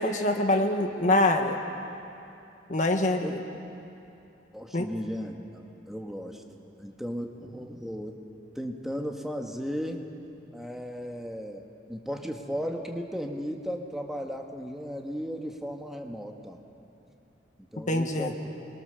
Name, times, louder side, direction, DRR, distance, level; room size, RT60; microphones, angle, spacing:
voice 1, 0.0-1.6 2.7-3.4 4.7-4.9 17.9-18.3, left 1 dB, 45° left, 5 dB, 1.4 m, -24 dB
voice 2, 4.5-6.4 6.8-8.2 8.5-10.0 10.5-16.6 17.7-18.4, equal, ahead, 2 dB, 1.5 m, -35 dB
28.5 x 22.0 x 6.9 m, 2.7 s
head